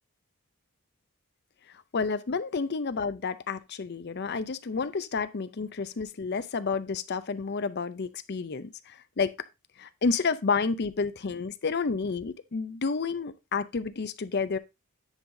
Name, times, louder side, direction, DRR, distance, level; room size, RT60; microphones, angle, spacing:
voice 1, 1.9-9.3 9.8-14.6, left 4 dB, 50° left, 0.5 m, -30 dB
9.8 x 5.6 x 2.6 m
head